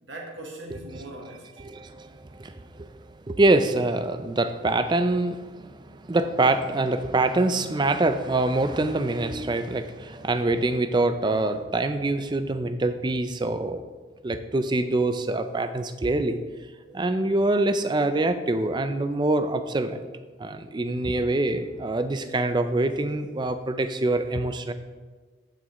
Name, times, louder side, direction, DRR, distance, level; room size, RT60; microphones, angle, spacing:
voice 1, 0.0-1.6 12.2-12.5 16.9-17.0 21.5-21.7 24.2-24.4, right 1 dB, 75° right, -1 dB, 1.4 m, -42 dB
voice 2, 1.6-3.0 3.3-13.8 14.2-16.4 16.9-20.0 20.4-24.7, right 2 dB, 25° right, 10 dB, 0.4 m, -25 dB
14.0 x 6.3 x 3.1 m, 1.4 s
head